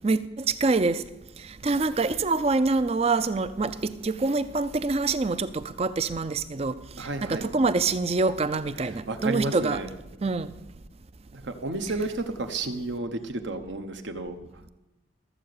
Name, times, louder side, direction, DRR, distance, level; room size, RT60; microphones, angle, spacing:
voice 1, 0.0-1.0 1.6-9.8 10.2-10.5, right 3 dB, 30° right, 0.4 m, -26 dB
voice 2, 7.0-7.5 9.1-9.9 11.3-14.4, right 2 dB, 65° right, 1.0 m, -31 dB
14.0 x 7.7 x 6.7 m
head